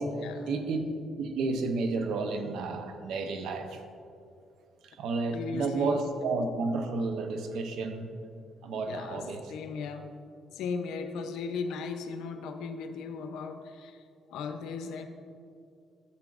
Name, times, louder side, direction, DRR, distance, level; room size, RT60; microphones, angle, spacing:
voice 1, 0.5-3.8 4.8-8.1 8.6-9.5, right 3 dB, 80° right, 6 dB, 0.7 m, -31 dB
voice 2, 5.3-6.0 8.9-10.1 10.5-14.0 14.3-15.1, left 5 dB, 90° left, 7 dB, 0.6 m, -37 dB
11.5 x 7.2 x 2.5 m, 2.5 s
cardioid pair, 90°, 0 cm